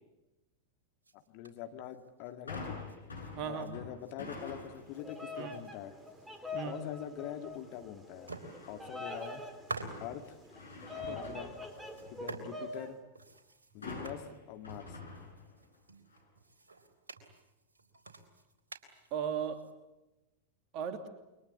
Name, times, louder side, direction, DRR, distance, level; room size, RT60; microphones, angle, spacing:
sound 1, 1.0-3.7 4.0-6.6 7.0-7.1 7.4-7.9 8.2-10.6 11.5-19.7, right 3 dB, 70° right, 3.8 m, -50 dB
voice 1, 1.1-2.8 3.4-5.9 6.6-8.3 8.7-9.4 10.0-10.4 10.9-11.5 12.2-13.0 13.7-15.0, left 10 dB, 45° left, 7 dB, 2.1 m, -44 dB
sound 2, 2.5-5.0 5.5-5.9 8.3-9.0 9.4-12.3 13.8-15.8 16.1-16.2, left 3 dB, 75° left, 7.3 m, -47 dB
voice 2, 3.3-3.7 5.4-5.6 6.5-6.7 11.1-11.2 19.1-19.7 20.7-21.1, right 8 dB, 40° right, 8 dB, 3.0 m, -36 dB
Bird vocalization bird call bird song, 4.8-12.9, left 2 dB, 5° right, 4.3 m, -44 dB
28.5 x 24.0 x 8.3 m, 0.99 s
figure-of-eight pair, 90°, 0 cm